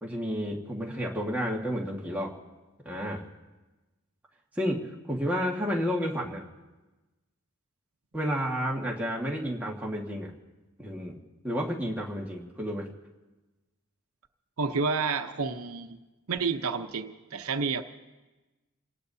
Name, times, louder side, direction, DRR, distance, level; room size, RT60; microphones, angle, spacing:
voice 1, 0.0-2.3 2.8-3.2 4.5-6.4 8.1-10.3 10.8-11.2 11.4-12.9, equal, 5° right, -3 dB, 1.7 m, -31 dB
voice 2, 14.6-16.0 16.3-17.8, right 4 dB, 80° right, 7 dB, 0.8 m, -30 dB
28.0 x 18.5 x 2.8 m, 1.1 s
head